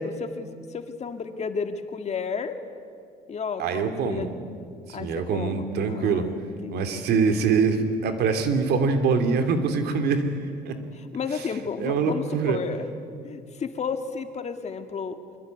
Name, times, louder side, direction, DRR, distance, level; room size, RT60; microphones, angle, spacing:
voice 1, 0.0-2.5 3.3-4.6 4.9-7.1 10.9-12.9 13.2-15.2, left 5 dB, 40° left, 7 dB, 2.1 m, -33 dB
voice 2, 3.6-4.3 4.9-6.3 6.7-10.2 10.6-10.8 11.8-12.6, right 5 dB, 70° right, 7 dB, 2.9 m, -24 dB
24.5 x 23.0 x 9.4 m, 2.3 s
cardioid pair, 110°, 17 cm